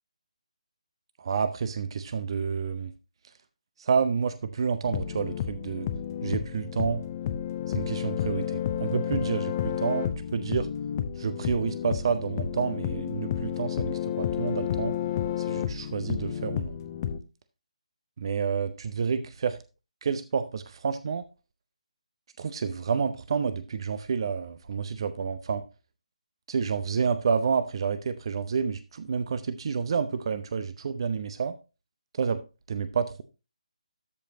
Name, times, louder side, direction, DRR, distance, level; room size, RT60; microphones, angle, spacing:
voice 1, 1.2-2.9 3.8-5.9 6.2-7.0 7.7-10.7 11.2-15.0 15.4-16.7 18.2-19.6 20.0-21.2 22.4-25.6 26.5-31.5 32.2-32.4 32.7-33.2, right 6 dB, 45° right, 0.6 m, -29 dB
sound 1, 4.8-17.2, left 10 dB, 30° left, 0.7 m, -31 dB
13.5 x 5.0 x 2.8 m
figure-of-eight pair, 150°, 4 cm